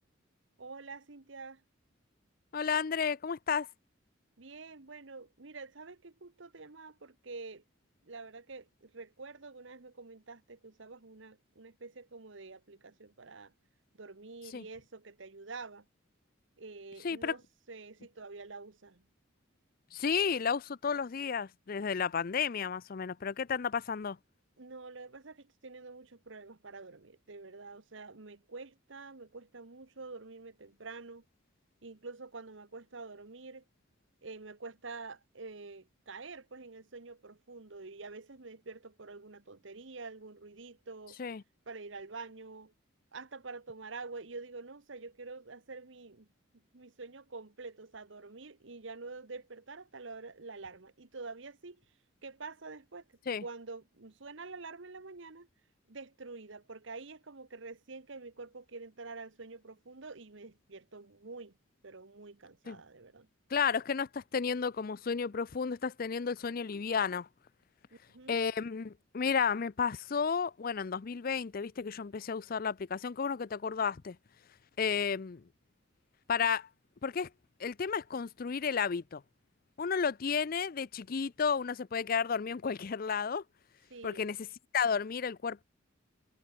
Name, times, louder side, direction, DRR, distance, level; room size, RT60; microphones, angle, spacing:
voice 1, 0.6-1.6 4.4-7.6 8.0-13.5 14.0-15.9 16.6-17.4 17.7-19.0 24.6-31.2 31.8-33.6 34.2-41.2 41.7-42.7 43.1-46.3 46.7-51.8 52.2-53.0 53.4-55.5 55.9-61.6 61.8-63.3 68.1-68.4 83.9-84.3, right 3 dB, 65° right, 1.2 m, -47 dB
voice 2, 2.5-3.7 14.5-14.6 17.0-17.3 19.9-24.2 41.2-41.4 53.3-53.4 62.7-62.8 63.5-67.3 68.3-74.2 74.8-75.4 76.3-76.7 77.0-77.3 77.6-79.2 79.8-83.4 84.0-84.4 84.7-85.6, left 6 dB, 45° left, 0.5 m, -32 dB
head